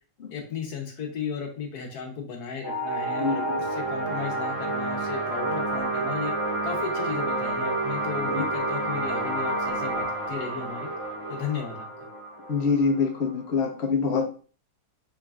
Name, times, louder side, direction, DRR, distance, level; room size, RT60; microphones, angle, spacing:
voice 1, 0.3-6.3 6.6-10.9 11.3-12.1, left 6 dB, 75° left, 2 dB, 1.4 m, -35 dB
sound 1, 2.6-13.7, right 2 dB, 35° right, 0.5 m, -29 dB
voice 2, 3.2-3.6 8.3-8.4 12.5-14.2, left 5 dB, 50° left, 2 dB, 0.9 m, -25 dB
4.0 x 3.6 x 2.3 m, 0.40 s
omnidirectional pair, 1.7 m